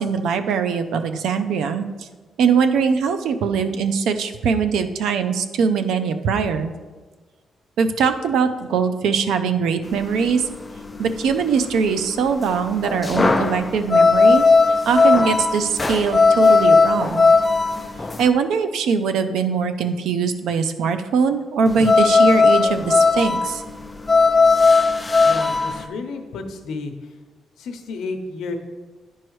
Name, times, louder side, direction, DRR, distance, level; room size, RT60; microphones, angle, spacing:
voice 1, 0.0-2.1 2.4-6.7 7.8-10.4 11.0-14.4 14.9-17.3 18.2-23.6, right 5 dB, 85° right, 9 dB, 0.5 m, -21 dB
sound 1, 9.8-18.3 21.7-25.8, left 4 dB, 15° left, 0.3 m, -17 dB
voice 2, 25.2-27.2 27.6-28.6, left 3 dB, 75° left, 6 dB, 0.8 m, -31 dB
10.5 x 4.6 x 3.1 m, 1.3 s
cardioid pair, 160°, 0 cm